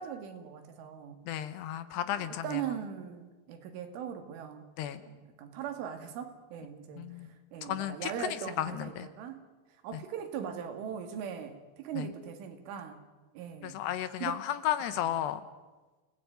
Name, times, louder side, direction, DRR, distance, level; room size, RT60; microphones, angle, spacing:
voice 1, 0.0-1.2 2.1-7.2 7.5-9.4 9.8-13.0 13.3-13.8 14.2-14.4 15.0-15.1, right 8 dB, 80° right, 7 dB, 4.6 m, -40 dB
voice 2, 1.3-2.6 4.8-5.0 7.0-7.3 7.6-8.3 8.6-9.1 12.0-12.1 13.6-15.4, left 11 dB, 75° left, 12 dB, 2.7 m, -33 dB
28.0 x 18.5 x 9.2 m, 1.3 s
omnidirectional pair, 5.6 m